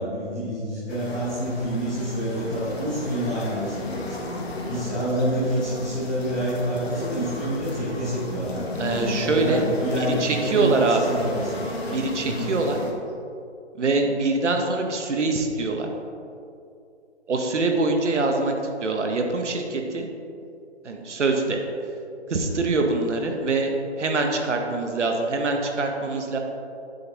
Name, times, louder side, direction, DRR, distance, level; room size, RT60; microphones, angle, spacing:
voice 1, 0.0-4.1 4.7-11.7 12.2-12.5, equal, 5° left, -15 dB, 1.0 m, -27 dB
sound 1, 0.9-12.9, left 2 dB, 60° left, 1.2 m, -34 dB
voice 2, 8.8-9.6 10.0-11.2 11.9-12.8 13.8-15.9 17.3-18.5 18.8-20.1 20.8-21.6 22.3-23.7 24.0-26.4, right 3 dB, 90° right, 3 dB, 1.0 m, -24 dB
7.8 x 5.3 x 3.0 m, 2.5 s
hypercardioid pair, 175°, 35 cm